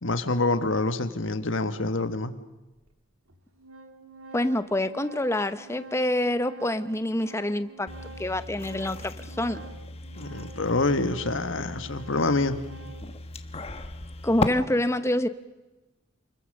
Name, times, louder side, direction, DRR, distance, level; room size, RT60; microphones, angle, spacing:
voice 1, 0.0-2.3 10.2-12.6, left 2 dB, 65° left, 10 dB, 1.5 m, -26 dB
Organ, 1.9-2.0 2.9-3.0 3.3-13.2, right 3 dB, 85° right, 2.3 m, -48 dB
voice 2, 4.3-9.6 14.2-15.3, left 1 dB, 15° left, 12 dB, 0.8 m, -27 dB
sound 1, 7.9-14.5, left 2 dB, 30° left, 1.2 m, -36 dB
28.0 x 21.5 x 6.6 m, 1.1 s
head